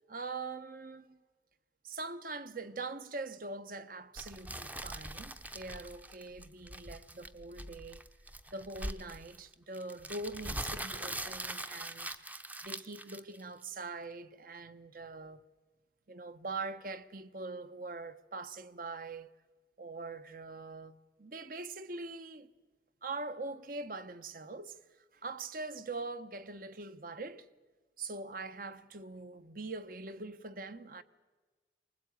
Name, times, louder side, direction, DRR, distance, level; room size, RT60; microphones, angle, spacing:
voice 1, 0.1-1.2 1.8-8.0 8.5-15.4 16.1-19.3 19.8-22.5 23.0-24.8 25.1-27.5 28.0-31.0, right 3 dB, 50° right, 1.0 m, -43 dB
sound 1, 4.2-13.6, right 1 dB, 10° right, 0.8 m, -42 dB
24.0 x 20.0 x 9.3 m
head